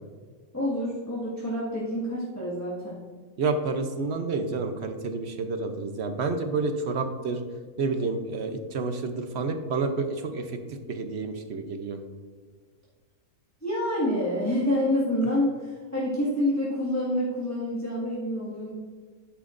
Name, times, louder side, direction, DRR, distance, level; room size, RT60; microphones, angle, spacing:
voice 1, 0.5-3.0 13.6-18.8, left 1 dB, 10° left, -8 dB, 1.7 m, -27 dB
voice 2, 3.4-7.4 7.8-10.6 10.9-12.0, right 4 dB, 55° right, 7 dB, 0.9 m, -29 dB
10.0 x 9.4 x 2.6 m, 1.5 s
omnidirectional pair, 1.6 m